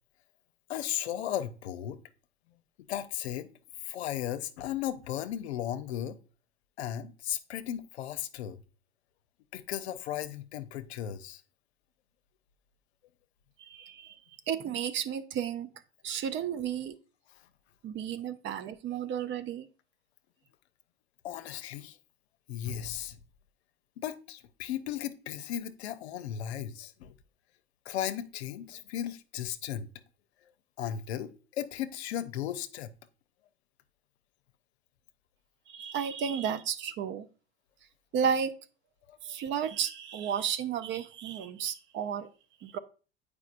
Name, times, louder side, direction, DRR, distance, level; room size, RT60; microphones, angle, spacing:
voice 1, 0.7-2.0 2.9-3.5 3.8-6.2 6.8-8.6 9.5-11.4 21.2-22.0 22.5-23.2 24.0-27.1 27.9-29.9 30.8-32.9 39.1-39.2, left 11 dB, 75° left, 0.6 m, -36 dB
voice 2, 13.6-14.2 14.5-15.7 16.0-16.9 17.8-19.7 35.7-37.3 38.1-38.5 39.2-42.3 42.6-42.8, right 8 dB, 35° right, 0.6 m, -33 dB
8.3 x 4.8 x 2.5 m
hypercardioid pair, 85°, 32 cm